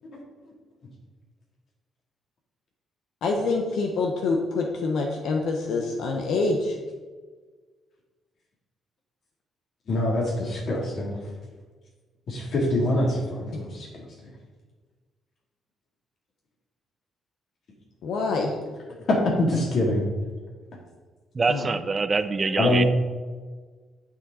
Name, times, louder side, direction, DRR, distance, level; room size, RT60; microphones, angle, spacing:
voice 1, 3.2-6.7 13.5-13.7 18.0-18.5 21.5-21.7, left 3 dB, 75° left, 2 dB, 1.2 m, -26 dB
voice 2, 9.9-11.2 12.3-14.1 19.1-20.0 22.6-22.9, left 1 dB, 60° left, -2 dB, 3.3 m, -24 dB
voice 3, 21.3-22.8, right 4 dB, 30° right, 11 dB, 0.6 m, -24 dB
10.5 x 7.0 x 4.3 m, 1.4 s
cardioid pair, 90°, 0 cm